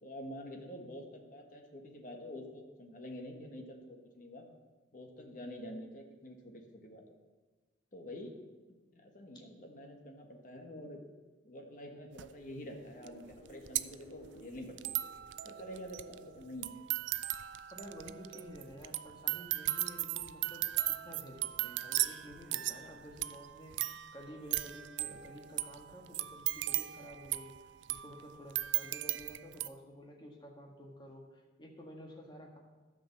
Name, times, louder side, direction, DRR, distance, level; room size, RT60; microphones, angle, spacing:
voice 1, 0.0-4.4 4.9-7.0 7.9-8.3 8.9-11.0 11.4-14.9 15.4-16.7, left 1 dB, 45° left, 3 dB, 1.4 m, -47 dB
sound 1, 12.2-12.3 13.1-13.2 13.3-29.7, right 16 dB, 80° right, 0.4 m, -37 dB
sound 2, 12.6-16.4, equal, 75° left, 1.5 m, -58 dB
voice 2, 17.7-27.5 27.9-32.6, equal, 25° left, 0 dB, 1.6 m, -51 dB
12.5 x 5.3 x 7.3 m, 1.3 s
head